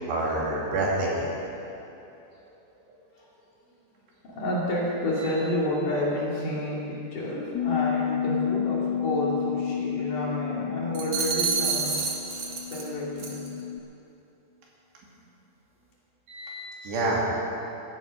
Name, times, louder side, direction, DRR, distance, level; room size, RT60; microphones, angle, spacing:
voice 1, 0.1-1.3 5.2-5.3 16.3-17.2, right 2 dB, 75° right, -4 dB, 4.6 m, -28 dB
voice 2, 4.3-12.0 12.7-13.4, left 1 dB, 50° left, -5 dB, 3.6 m, -30 dB
Bass guitar, 7.6-13.8, left 9 dB, 80° left, 2.3 m, -30 dB
sound 1, 10.9-12.9 13.2-13.5, right 5 dB, 60° right, 1.6 m, -28 dB
16.0 x 13.5 x 5.2 m, 2.9 s
omnidirectional pair, 5.0 m